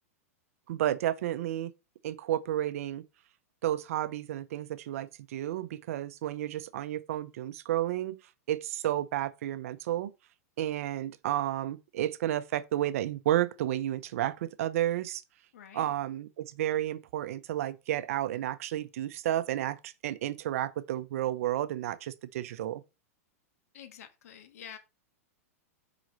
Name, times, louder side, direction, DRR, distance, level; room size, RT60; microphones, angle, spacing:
voice 1, 0.7-1.7 2.0-3.0 3.6-8.2 8.5-10.1 10.6-15.2 15.7-22.8, right 12 dB, 65° right, 0.8 m, -31 dB
voice 2, 15.5-15.9 23.7-24.8, left 9 dB, 75° left, 1.7 m, -48 dB
6.3 x 5.0 x 5.4 m
supercardioid pair, 145°, 8 cm